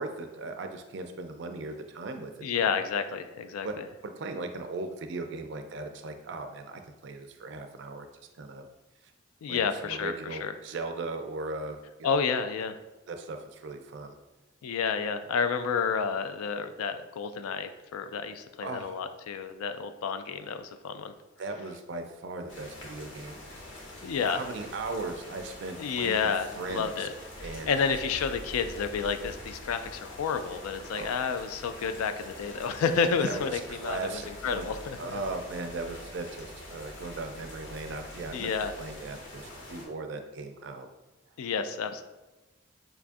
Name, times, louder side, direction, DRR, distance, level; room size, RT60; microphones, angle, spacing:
voice 1, 0.0-2.3 2.6-2.7 3.6-3.8 4.0-8.1 8.4-8.7 9.5-12.2 13.1-14.2 18.6-19.0 21.4-23.4 24.3-27.1 27.4-27.9 30.9-31.2 33.2-34.7 35.0-38.5 38.8-40.9, right 3 dB, 55° right, 6 dB, 0.3 m, -38 dB
voice 2, 2.4-3.8 9.4-10.5 12.0-12.8 14.6-21.1 24.0-24.4 25.8-27.1 27.4-35.0 38.3-38.7 41.4-42.0, left 6 dB, 85° left, 10 dB, 0.3 m, -30 dB
sound 1, 22.5-39.9, left 1 dB, 60° left, 0.8 m, -45 dB
4.8 x 2.3 x 2.5 m, 1.1 s
head